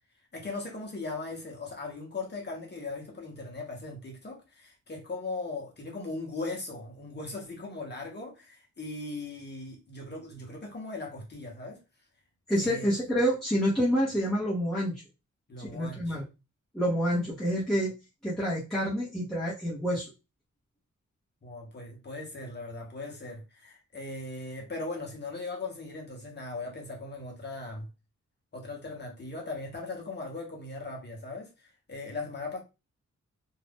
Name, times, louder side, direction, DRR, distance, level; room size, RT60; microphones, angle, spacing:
voice 1, 0.3-11.8 12.6-12.9 15.5-16.2 21.4-27.9 28.5-32.6, left 3 dB, 35° left, 1.0 m, -39 dB
voice 2, 12.5-15.0 15.6-16.2 16.7-17.9 18.2-20.1, equal, ahead, 0.9 m, -28 dB
2.6 x 2.4 x 3.5 m
wide cardioid pair, 165°, 30 cm